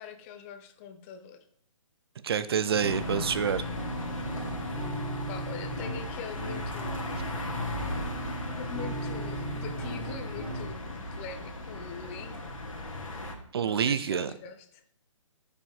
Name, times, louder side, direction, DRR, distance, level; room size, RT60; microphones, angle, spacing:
voice 1, 0.0-1.4 5.3-7.2 8.5-12.5 13.6-14.8, left 7 dB, 25° left, 7 dB, 0.9 m, -43 dB
voice 2, 2.2-3.6 13.5-14.3, right 7 dB, 50° right, 14 dB, 0.6 m, -27 dB
sound 1, 2.7-10.7, right 1 dB, 25° right, 3.3 m, -38 dB
sound 2, 2.8-13.3, left 1 dB, 80° left, 2.2 m, -37 dB
15.0 x 5.1 x 3.7 m, 0.65 s
figure-of-eight pair, 145°, 17 cm